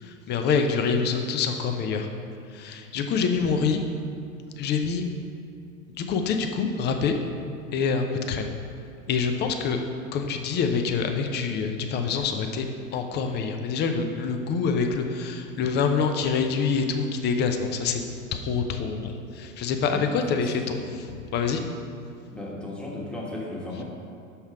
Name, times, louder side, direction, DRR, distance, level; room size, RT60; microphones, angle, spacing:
voice 1, 0.0-2.1 2.5-3.8 4.6-5.0 6.0-7.1 7.7-8.5 9.1-9.8 10.1-12.6 12.9-18.0 18.3-21.6, left 5 dB, 25° left, 5 dB, 0.6 m, -26 dB
voice 2, 19.9-20.5 22.3-23.8, left 2 dB, ahead, -4 dB, 1.3 m, -35 dB
6.3 x 5.6 x 4.7 m, 2.4 s
hypercardioid pair, 95°, 41 cm